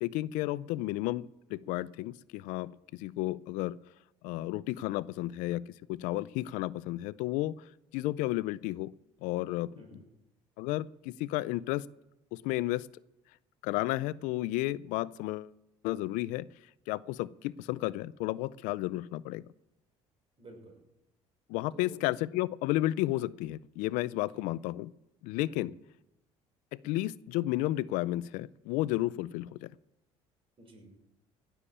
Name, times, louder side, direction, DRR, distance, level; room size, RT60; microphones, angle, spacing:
voice 1, 0.0-3.8 4.2-5.6 5.9-7.5 7.9-8.9 9.2-9.7 10.6-11.8 12.3-12.9 13.6-15.5 15.8-16.5 16.9-19.4 21.5-24.9 25.2-25.7 26.8-29.7, left 17 dB, 80° left, 19 dB, 0.5 m, -32 dB
voice 2, 9.8-10.1 20.4-20.8 21.7-22.0 24.3-24.5 25.5-25.7 30.6-30.9, right 2 dB, 45° right, 2 dB, 6.0 m, -52 dB
17.0 x 7.1 x 8.5 m, 0.92 s
supercardioid pair, 90°, 13 cm